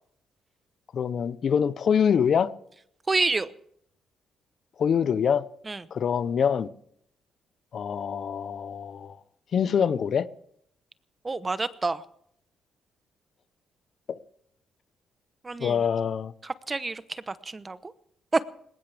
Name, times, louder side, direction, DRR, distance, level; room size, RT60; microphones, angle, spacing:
voice 1, 0.9-2.5 4.8-5.4 5.9-6.7 7.7-9.2 9.5-10.3 14.1-14.2 15.6-16.3, left 7 dB, 55° left, 0.7 m, -25 dB
voice 2, 3.1-3.5 5.7-5.8 11.2-12.0 15.4-15.8 16.4-17.9 18.3-18.4, right 3 dB, 25° right, 0.9 m, -28 dB
20.0 x 18.0 x 3.5 m
cardioid pair, 90°, 0 cm